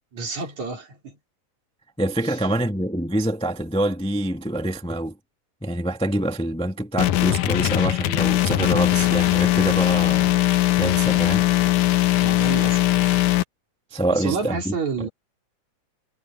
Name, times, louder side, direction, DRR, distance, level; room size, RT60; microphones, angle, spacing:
voice 1, 0.1-1.2 2.2-2.4 12.2-13.2 14.1-15.1, right 4 dB, 55° right, 5.1 m, -30 dB
voice 2, 2.0-5.2 5.6-10.4 10.8-11.5 13.9-15.1, right 1 dB, 5° left, 0.8 m, -26 dB
sound 1, 7.0-13.4, left 15 dB, 75° left, 2.2 m, -20 dB
omnidirectional pair, 3.8 m